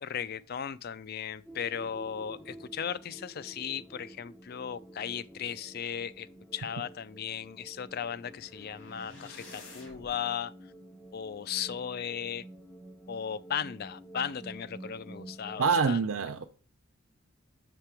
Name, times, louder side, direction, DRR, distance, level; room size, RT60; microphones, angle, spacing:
voice 1, 0.0-6.3 6.5-10.5 11.1-12.4 13.1-16.0, left 8 dB, 45° left, 0.4 m, -36 dB
sound 1, 1.5-15.9, right 1 dB, 5° left, 0.7 m, -50 dB
sound 2, 8.0-10.2, left 2 dB, 65° left, 2.4 m, -51 dB
voice 2, 15.6-16.4, right 5 dB, 75° right, 0.5 m, -26 dB
6.8 x 5.1 x 4.4 m
head